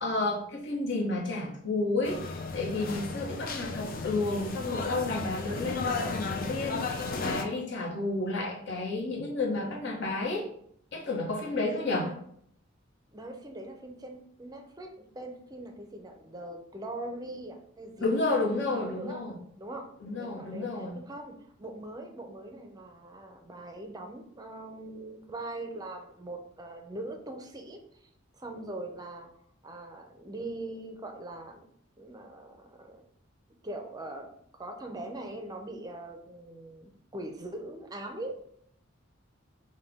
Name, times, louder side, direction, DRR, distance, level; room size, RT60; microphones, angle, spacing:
voice 1, 0.0-10.5 10.9-12.1 18.0-19.4 20.0-21.0, left 2 dB, 60° left, -2 dB, 1.1 m, -31 dB
sound 1, 2.0-7.4, left 3 dB, 45° left, 0.5 m, -34 dB
voice 2, 11.7-12.2 13.1-18.3 18.6-19.2 19.6-19.9 20.2-27.8 28.4-29.3 29.6-31.7 32.0-33.0 33.6-34.3 34.6-38.4, right 2 dB, 20° right, 4 dB, 0.5 m, -41 dB
5.6 x 2.2 x 3.5 m, 0.67 s
head